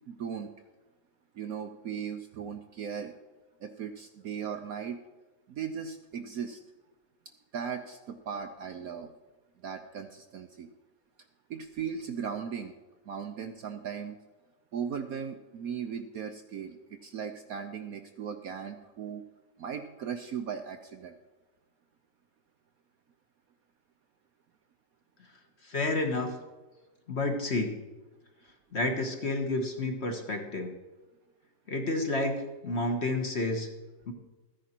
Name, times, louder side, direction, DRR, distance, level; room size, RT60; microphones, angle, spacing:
voice 1, 0.1-0.5 1.3-3.2 3.6-5.0 5.5-6.6 7.5-9.1 9.6-10.7 11.5-12.7 13.1-14.2 14.7-19.2 19.6-21.2, right 7 dB, 65° right, 7 dB, 1.0 m, -37 dB
voice 2, 25.6-26.3 27.1-27.7 28.7-30.7 31.7-33.7 34.1-34.2, left 2 dB, 40° left, 3 dB, 1.5 m, -30 dB
14.5 x 9.9 x 4.4 m, 1.2 s
omnidirectional pair, 2.0 m